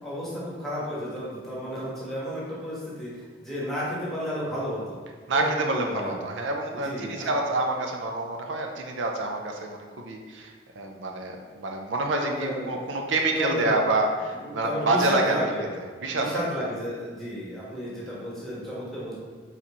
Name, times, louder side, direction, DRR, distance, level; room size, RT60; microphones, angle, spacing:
voice 1, 0.0-3.1 3.4-5.0 5.3-6.2 6.8-7.4 12.2-13.0 13.3-13.8 14.4-15.7 16.1-19.2, equal, ahead, -8 dB, 1.1 m, -32 dB
voice 2, 5.3-15.4 15.8-16.4, right 2 dB, 85° right, 2 dB, 0.5 m, -27 dB
4.2 x 4.0 x 3.0 m, 1.6 s
head